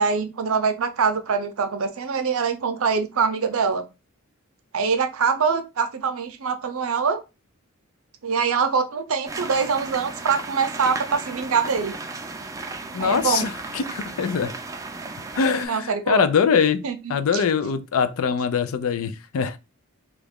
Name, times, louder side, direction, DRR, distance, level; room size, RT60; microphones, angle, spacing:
voice 1, 0.0-3.8 4.7-7.2 8.2-12.0 13.0-13.5 15.7-16.3 16.8-17.0 17.3-17.4, right 5 dB, 70° right, 0.6 m, -24 dB
sound 1, 9.3-15.7, right 3 dB, 15° right, 0.4 m, -35 dB
voice 2, 12.9-14.5 15.4-16.8 17.1-19.6, left 6 dB, 70° left, 0.4 m, -23 dB
3.0 x 2.4 x 3.5 m
head